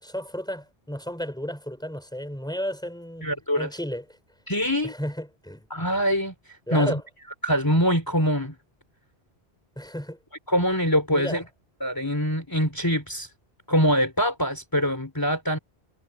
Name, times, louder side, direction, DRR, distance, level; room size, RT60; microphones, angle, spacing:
voice 1, 0.0-3.3 3.6-4.2 4.8-5.7 6.7-7.0 9.8-10.2 11.1-11.4, equal, 5° left, 4.8 m, -33 dB
voice 2, 3.2-3.7 4.5-4.9 5.7-6.3 6.7-7.0 7.4-8.6 10.5-11.4 11.8-13.3 13.7-15.6, equal, 20° left, 3.6 m, -23 dB
omnidirectional pair, 1.0 m